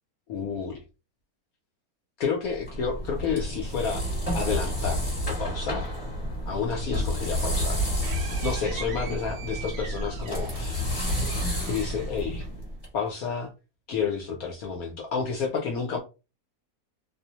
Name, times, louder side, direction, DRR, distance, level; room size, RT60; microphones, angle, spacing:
voice 1, 0.3-0.8 2.2-4.0 4.3-5.0 5.3-5.9 6.5-7.9 8.4-10.9 11.7-12.5 12.9-13.5 13.9-16.0, left 6 dB, 70° left, 0.9 m, -30 dB
sound 1, 2.5-12.9, equal, 25° left, 1.2 m, -30 dB
sound 2, 7.0-12.9, right 7 dB, 65° right, 0.9 m, -44 dB
2.7 x 2.0 x 2.7 m
omnidirectional pair, 1.8 m